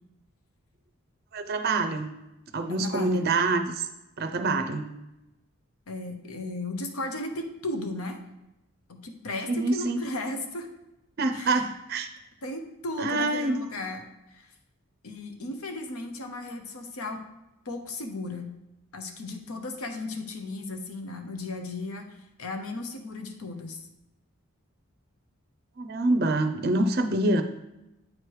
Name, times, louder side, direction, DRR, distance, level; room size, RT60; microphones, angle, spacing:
voice 1, 1.3-2.2 2.5-3.9 4.2-4.9 9.5-10.0 11.2-12.1 13.0-13.6 25.8-27.4, right 2 dB, 45° right, 7 dB, 0.4 m, -26 dB
voice 2, 2.7-3.3 5.9-8.2 8.9-10.7 11.3-11.6 12.4-14.5 15.0-17.2 17.6-18.5 18.9-23.8, left 2 dB, 80° left, 5 dB, 0.8 m, -35 dB
8.8 x 3.2 x 4.6 m, 0.93 s
head